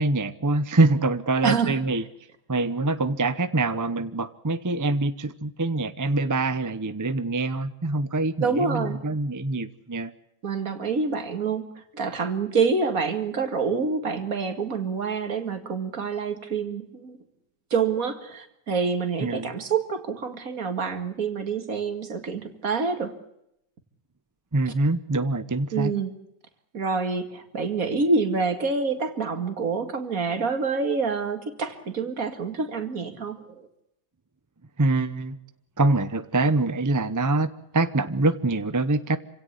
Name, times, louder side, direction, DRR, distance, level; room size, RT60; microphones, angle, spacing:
voice 1, 0.0-2.0 2.5-10.1 19.2-19.5 24.5-25.9 34.8-35.4 35.8-39.2, right 2 dB, 20° right, 13 dB, 0.5 m, -24 dB
voice 2, 1.4-1.8 8.4-9.0 10.4-17.2 17.7-23.2 25.7-26.1 26.7-33.7, right 5 dB, 55° right, 8 dB, 2.4 m, -27 dB
27.0 x 17.0 x 8.1 m, 0.80 s
omnidirectional pair, 1.8 m